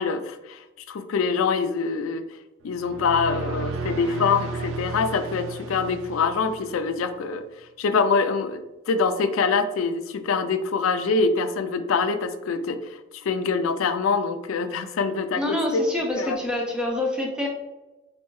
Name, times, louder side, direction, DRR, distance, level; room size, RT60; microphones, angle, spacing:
voice 1, 0.0-2.2 2.6-7.4 7.8-15.8 16.2-16.4, left 4 dB, 80° left, 9 dB, 0.4 m, -25 dB
sound 1, 2.7-7.0, right 4 dB, 75° right, 0.4 m, -33 dB
voice 2, 15.4-17.5, left 1 dB, 5° right, -1 dB, 0.7 m, -26 dB
4.4 x 2.6 x 3.1 m, 1.0 s
head